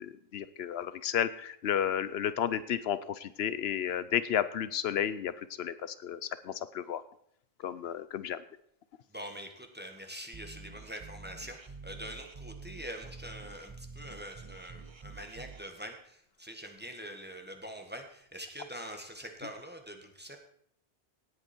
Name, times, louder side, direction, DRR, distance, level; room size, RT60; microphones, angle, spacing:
voice 1, 0.0-7.0 7.6-8.4, left 9 dB, 80° left, 15 dB, 0.9 m, -32 dB
voice 2, 9.1-20.4, equal, 10° right, 3 dB, 1.6 m, -44 dB
sound 1, 10.3-15.7, right 4 dB, 30° right, 0.7 m, -48 dB
17.5 x 8.3 x 4.5 m, 0.69 s
omnidirectional pair, 1.0 m